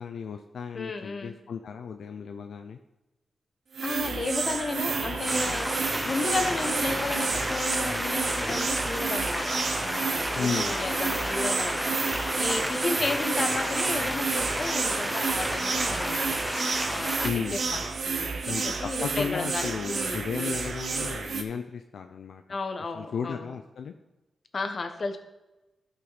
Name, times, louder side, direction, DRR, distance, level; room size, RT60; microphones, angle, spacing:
voice 1, 0.0-2.8 10.3-11.0 17.2-17.8 18.5-18.7 19.0-22.4 22.9-23.9, left 6 dB, 80° left, 6 dB, 0.5 m, -34 dB
voice 2, 0.7-1.4 3.8-5.7 6.0-16.3 16.9-17.2 17.5-20.6 22.5-23.5 24.5-25.2, left 3 dB, 45° left, 7 dB, 1.1 m, -33 dB
sound 1, 3.7-21.4, right 4 dB, 65° right, 0.9 m, -30 dB
sound 2, 4.7-16.4, left 1 dB, 20° left, 3.2 m, -40 dB
sound 3, 5.3-17.3, equal, 5° left, 0.6 m, -32 dB
12.5 x 5.6 x 4.1 m, 1.0 s
cardioid pair, 80°, 0 cm